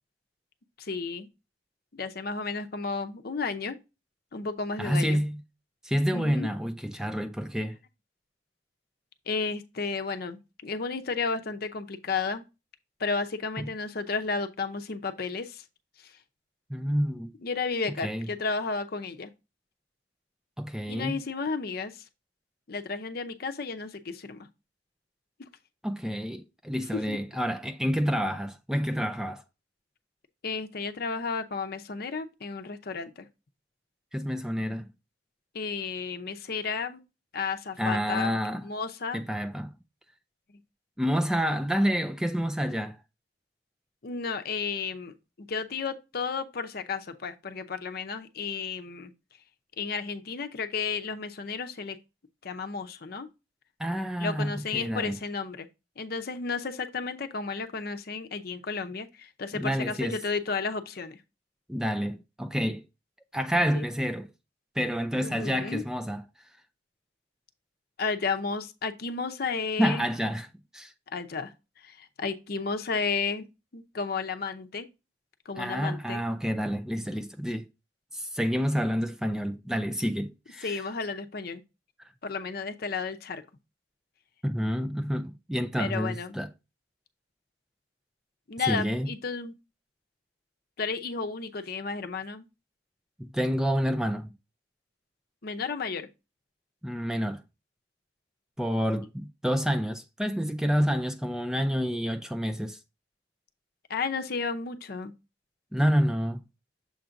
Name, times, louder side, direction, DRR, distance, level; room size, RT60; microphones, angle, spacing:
voice 1, 0.8-1.3 1.9-3.8 4.3-5.2 6.1-6.5 9.3-12.4 13.0-15.6 17.4-19.3 20.9-22.0 22.7-24.5 26.9-27.2 30.4-33.3 35.5-37.0 37.3-38.3 38.6-39.2 40.5-40.6 44.0-49.1 49.8-52.0 52.4-53.3 54.2-55.7 56.0-61.2 63.7-63.8 65.2-65.8 68.0-70.0 71.1-71.5 71.8-73.5 73.7-74.9 75.5-76.2 77.1-77.2 80.6-81.6 82.2-83.4 85.8-86.4 88.5-89.5 90.8-92.5 95.4-96.1 103.9-105.1, left 4 dB, 55° left, 0.7 m, -33 dB
voice 2, 4.8-5.4 5.8-7.8 13.6-13.7 16.7-17.3 18.0-18.3 20.6-21.2 25.8-29.4 34.1-34.9 37.8-38.6 39.1-39.7 41.0-43.0 53.8-55.2 59.5-60.2 61.7-62.8 63.3-64.3 64.8-66.2 69.8-70.5 70.7-70.9 75.6-77.7 78.1-80.8 82.0-82.1 84.4-86.5 88.6-89.1 93.2-94.3 96.8-97.4 98.6-102.8 105.7-106.4, equal, 5° right, 0.3 m, -28 dB
7.1 x 2.6 x 5.7 m
head